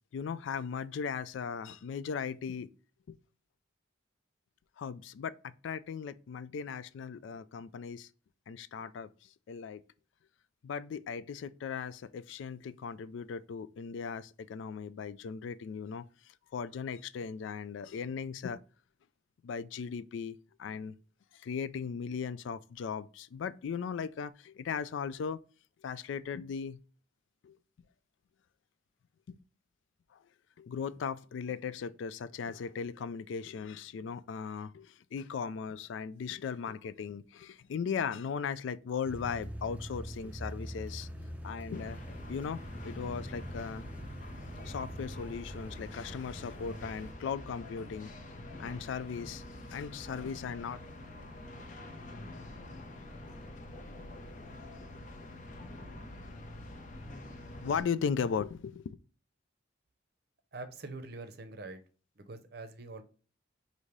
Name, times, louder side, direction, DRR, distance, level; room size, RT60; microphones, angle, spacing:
voice 1, 0.1-2.7 3.1-3.2 4.8-8.1 8.5-9.8 10.6-18.6 19.4-20.9 21.3-25.4 25.8-26.8 27.4-27.6 29.3-29.4 30.1-30.2 30.6-41.1 41.4-43.9 44.6-48.1 48.6-49.4 49.7-50.8 57.6-59.0, left 6 dB, 70° left, 0.3 m, -38 dB
sound 1, 39.1-47.1, equal, 10° right, 0.5 m, -44 dB
sound 2, 41.7-57.8, left 1 dB, 40° left, 0.7 m, -46 dB
voice 2, 60.5-61.8 62.2-63.0, right 3 dB, 55° right, 0.7 m, -44 dB
5.1 x 2.7 x 3.0 m
head